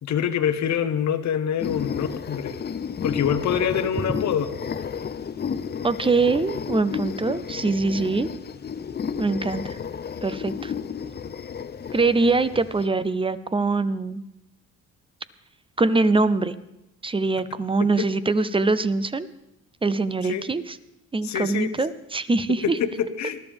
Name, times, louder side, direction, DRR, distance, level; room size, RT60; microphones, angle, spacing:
voice 1, 0.0-2.6 3.0-4.5 18.0-18.1 20.2-20.4 21.2-21.7 22.6-23.4, left 8 dB, 65° left, 10 dB, 1.1 m, -25 dB
sound 1, 1.6-12.9, left 7 dB, 35° left, 0.6 m, -32 dB
voice 2, 5.8-8.3 9.2-9.8 10.2-10.7 11.9-14.2 15.8-16.6 17.0-19.3 19.8-20.8 21.1-22.8, right 3 dB, 15° right, 14 dB, 0.6 m, -23 dB
20.0 x 12.5 x 3.5 m, 0.90 s
cardioid pair, 90°, 30 cm